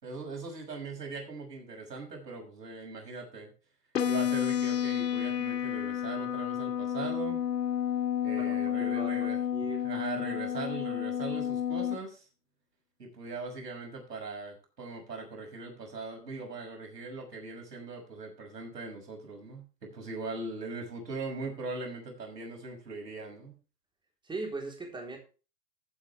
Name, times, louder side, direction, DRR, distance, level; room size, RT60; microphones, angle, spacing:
voice 1, 0.0-3.5 4.0-7.4 8.2-9.4 9.8-12.3 13.0-23.5, right 3 dB, 85° right, 2 dB, 6.2 m, -40 dB
sound 1, 3.9-12.0, left 9 dB, 90° left, 2.0 m, -31 dB
voice 2, 8.4-9.8 24.2-25.2, right 3 dB, 10° right, 2 dB, 3.7 m, -40 dB
15.0 x 8.3 x 3.4 m, 0.34 s
hypercardioid pair, 120°, 48 cm